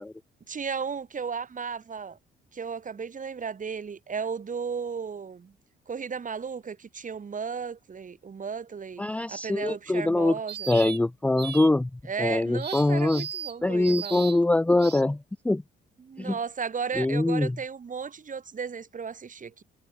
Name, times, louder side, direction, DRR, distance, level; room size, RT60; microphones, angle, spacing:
voice 1, 0.5-2.2 2.5-5.5 5.9-9.0 9.3-10.7 12.1-14.2 16.0-19.6, right 6 dB, 40° right, 5.9 m, -34 dB
voice 2, 9.0-10.4 10.7-11.9 12.2-13.3 13.6-15.6 16.2-16.3 17.0-17.6, left 2 dB, 5° left, 0.4 m, -23 dB
sound 1, 10.5-11.0 11.4-11.7 12.6-13.5 13.8-14.4 14.8-15.0, right 8 dB, 60° right, 6.2 m, -37 dB
cardioid pair, 90°, 20 cm